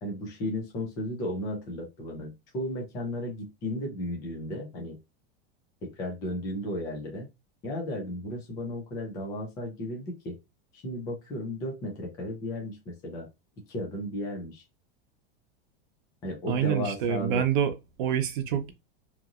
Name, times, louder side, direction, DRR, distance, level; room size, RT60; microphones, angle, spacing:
voice 1, 0.0-5.0 5.8-7.3 7.6-10.4 10.8-13.3 13.7-14.6 16.2-17.4, left 1 dB, 10° left, 0.3 m, -34 dB
voice 2, 16.5-18.7, right 9 dB, 50° right, 0.7 m, -27 dB
2.9 x 2.5 x 2.4 m
supercardioid pair, 175°, 32 cm